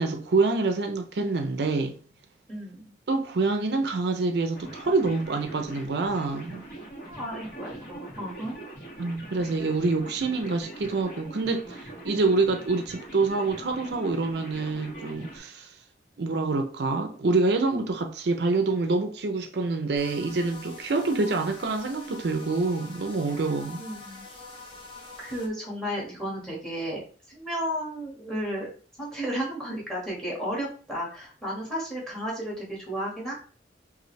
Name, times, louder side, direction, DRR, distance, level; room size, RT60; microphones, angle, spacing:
voice 1, 0.0-2.0 3.1-6.6 9.0-15.7 16.2-23.8, right 3 dB, 60° right, 0.5 m, -26 dB
voice 2, 2.5-2.9 7.1-8.6 23.8-24.2 25.2-28.7 29.0-33.3, equal, 5° left, 1.5 m, -33 dB
sound 1, 4.5-15.4, right 1 dB, 50° left, 1.8 m, -42 dB
sound 2, 20.0-25.5, left 3 dB, 30° left, 0.9 m, -44 dB
5.2 x 2.6 x 3.1 m
head